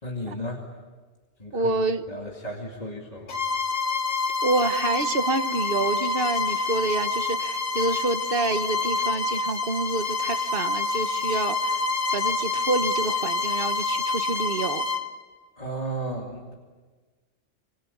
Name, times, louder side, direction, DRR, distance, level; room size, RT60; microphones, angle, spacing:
voice 1, 0.0-0.7 1.4-1.7 2.1-3.4 15.6-16.5, right 1 dB, 30° left, 0 dB, 2.5 m, -34 dB
voice 2, 1.5-2.0 4.4-11.8 12.1-14.9, right 3 dB, 50° right, 9 dB, 1.3 m, -27 dB
Bowed string instrument, 3.3-15.1, left 4 dB, 85° left, 1.8 m, -27 dB
26.0 x 25.5 x 8.5 m, 1.4 s
omnidirectional pair, 1.3 m